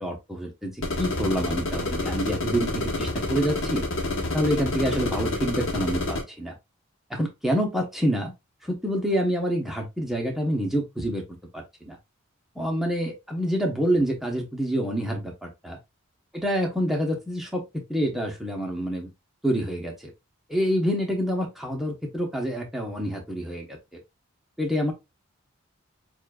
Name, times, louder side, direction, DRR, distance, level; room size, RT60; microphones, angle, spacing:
voice 1, 0.0-3.8 4.3-6.5 7.1-8.3 8.6-11.2 11.5-12.0 12.5-15.8 16.3-19.1 19.4-20.1 20.5-23.8 24.6-24.9, equal, ahead, 0 dB, 0.9 m, -27 dB
sound 1, 0.8-6.2, left 2 dB, 60° left, 1.2 m, -28 dB
7.1 x 2.6 x 2.3 m, 0.23 s
head